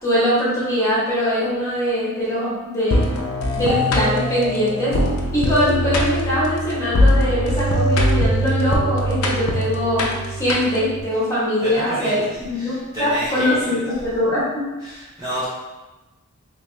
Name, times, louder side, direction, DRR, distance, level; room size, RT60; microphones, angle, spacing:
voice 1, 0.0-3.1 3.5-5.0 5.3-14.7, equal, 15° left, -9 dB, 1.3 m, -22 dB
sound 1, 2.9-11.0, equal, 75° left, 0.5 m, -21 dB
voice 2, 11.6-12.1 12.6-13.7 14.8-15.4, right 1 dB, 15° right, -10 dB, 0.6 m, -29 dB
3.0 x 2.8 x 3.3 m, 1.1 s
head